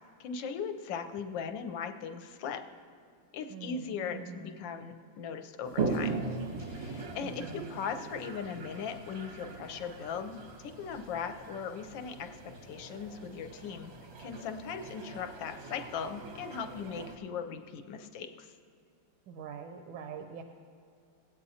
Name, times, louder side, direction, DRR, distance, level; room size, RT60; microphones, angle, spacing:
voice 1, 0.2-2.6 3.3-6.2 6.6-13.9 14.2-18.5, left 6 dB, 75° left, 7 dB, 1.3 m, -39 dB
voice 2, 3.5-4.6 7.2-7.8 19.3-20.4, right 6 dB, 80° right, 5 dB, 1.4 m, -44 dB
Toilet flush, 5.6-17.2, right 4 dB, 50° right, 0.8 m, -40 dB
17.5 x 8.8 x 2.8 m, 2.4 s
omnidirectional pair, 2.2 m